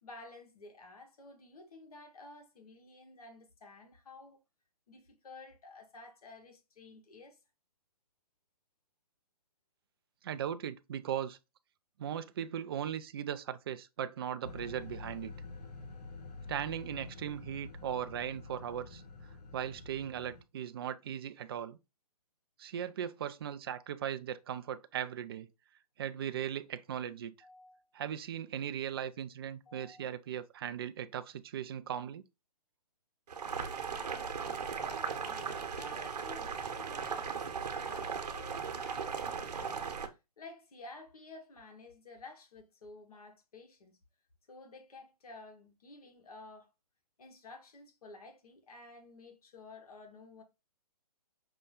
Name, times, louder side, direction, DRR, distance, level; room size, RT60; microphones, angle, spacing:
voice 1, 0.0-4.4 4.9-7.4 27.4-27.8 29.7-30.0 34.6-44.0 44.5-46.7 47.2-50.4, left 2 dB, 65° left, 1.3 m, -52 dB
voice 2, 10.2-11.4 12.0-15.3 16.5-19.0 19.5-21.8 22.6-25.5 26.0-27.3 27.9-32.2, right 9 dB, 35° right, 0.4 m, -38 dB
sound 1, 14.4-20.4, left 3 dB, 80° left, 1.0 m, -48 dB
Boiling, 33.3-40.1, right 6 dB, 75° right, 1.0 m, -37 dB
5.5 x 2.2 x 3.7 m
hypercardioid pair, 150°, 21 cm